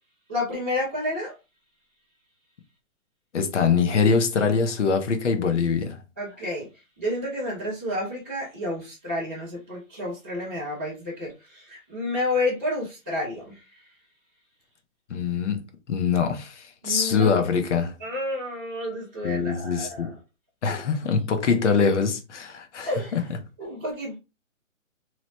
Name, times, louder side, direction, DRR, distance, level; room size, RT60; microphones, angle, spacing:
voice 1, 0.3-1.3 6.2-6.7 7.0-13.6 16.8-17.3 18.0-20.1 20.7-20.8 22.8-23.1 23.6-24.2, left 1 dB, 10° right, 0.4 m, -30 dB
voice 2, 3.3-6.0 15.1-15.6 15.9-18.0 19.2-20.1 20.6-23.2, left 5 dB, 65° left, 0.7 m, -23 dB
3.0 x 2.0 x 2.7 m
hypercardioid pair, 150°, 39 cm